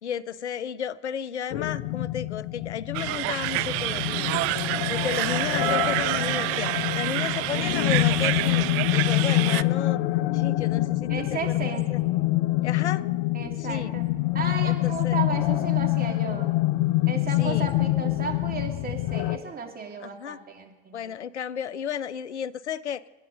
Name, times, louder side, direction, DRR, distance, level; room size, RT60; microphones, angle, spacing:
voice 1, 0.0-4.5 4.9-8.7 8.9-10.0 10.3-11.1 11.5-12.0 12.6-13.1 13.6-13.9 14.6-15.2 17.2-17.7 20.0-20.4 20.9-23.0, left 8 dB, 85° left, 20 dB, 0.6 m, -33 dB
sound 1, 1.5-19.4, left 17 dB, 55° left, 0.8 m, -26 dB
sound 2, 2.9-9.6, right 20 dB, 45° right, 0.5 m, -28 dB
voice 2, 11.1-11.9 13.3-14.1 14.3-16.5 17.1-21.1, right 5 dB, 25° right, 2 dB, 3.0 m, -34 dB
25.5 x 10.5 x 5.3 m, 1.2 s
figure-of-eight pair, 70°, 33 cm